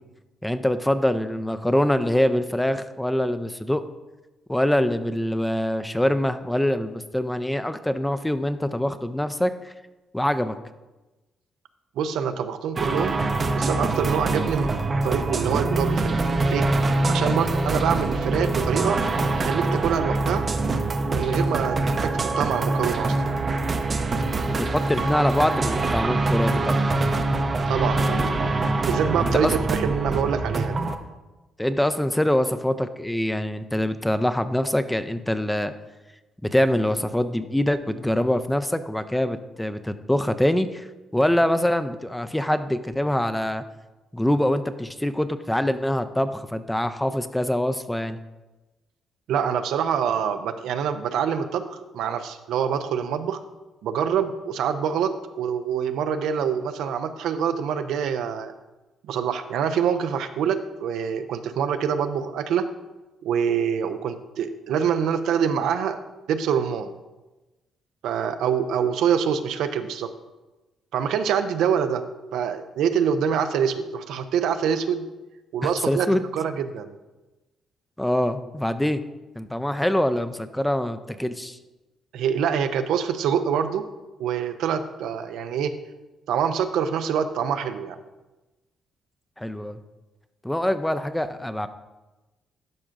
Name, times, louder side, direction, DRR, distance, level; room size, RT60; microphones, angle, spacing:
voice 1, 0.4-3.8 4.5-9.7 10.1-10.6 24.5-26.8 29.2-29.5 31.6-35.7 36.4-40.9 41.1-43.6 44.1-48.2 75.6-76.2 78.0-79.0 79.4-81.6 89.4-89.8 90.4-91.7, left 1 dB, 5° left, 10 dB, 0.4 m, -24 dB
voice 2, 12.0-13.2 13.5-14.7 15.0-16.2 16.5-16.7 17.1-19.0 19.4-20.4 21.1-21.8 22.0-23.2 27.7-28.3 28.9-30.9 49.3-53.4 53.8-58.5 59.1-62.7 63.2-66.0 66.3-66.9 68.0-70.1 70.9-72.0 72.3-75.1 75.5-76.1 76.3-76.9 82.1-83.8 84.2-85.7 86.3-88.0, right 7 dB, 85° right, 9 dB, 0.4 m, -25 dB
sound 1, 12.8-31.0, right 2 dB, 40° right, 0.6 m, -24 dB
12.0 x 5.1 x 2.5 m, 1.1 s
cardioid pair, 90°, 0 cm